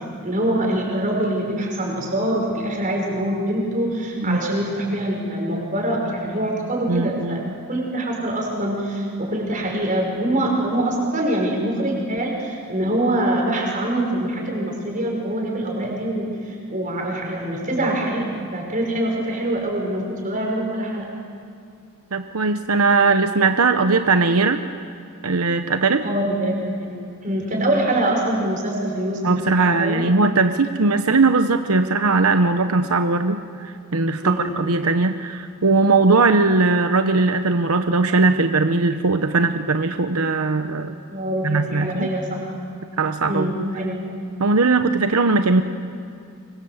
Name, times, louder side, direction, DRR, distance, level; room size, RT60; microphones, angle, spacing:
voice 1, 0.2-7.4 7.7-21.1 26.0-27.0 27.2-30.0 34.2-34.6 41.1-42.4 43.3-44.0, right 1 dB, 35° right, 0 dB, 6.0 m, -24 dB
voice 2, 6.9-7.4 22.1-24.6 25.2-26.0 29.2-41.0 41.4-42.1 43.0-43.5 44.4-45.6, right 3 dB, 90° right, 7 dB, 1.0 m, -19 dB
25.0 x 23.0 x 8.1 m, 2.4 s
head